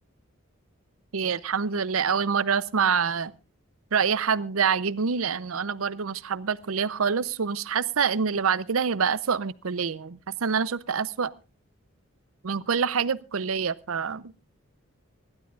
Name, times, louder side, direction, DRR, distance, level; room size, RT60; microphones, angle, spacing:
voice 1, 1.1-3.3 3.9-11.3 12.4-14.3, right 6 dB, 85° right, 0.6 m, -26 dB
25.5 x 12.0 x 2.4 m
head